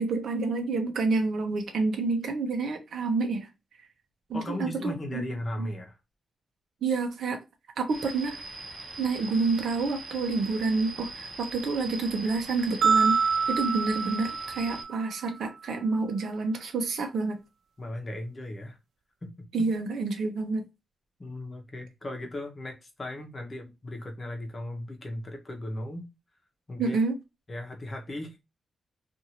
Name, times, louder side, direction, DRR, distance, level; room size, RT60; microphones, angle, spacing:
voice 1, 0.0-3.5 4.3-5.2 5.6-5.7 6.8-7.4 7.8-8.4 9.0-13.2 13.5-17.4 19.5-20.6 26.8-27.2, right 3 dB, 65° right, 0.8 m, -28 dB
voice 2, 4.3-6.0 17.8-18.8 19.2-19.3 19.6-19.7 21.2-26.1 26.7-27.0 27.5-28.4, left 1 dB, 25° left, 0.9 m, -37 dB
sound 1, 7.9-14.8, right 2 dB, 30° right, 1.0 m, -41 dB
sound 2, 12.8-15.2, right 5 dB, 90° right, 0.4 m, -26 dB
2.6 x 2.6 x 2.9 m
wide cardioid pair, 130°, 0 cm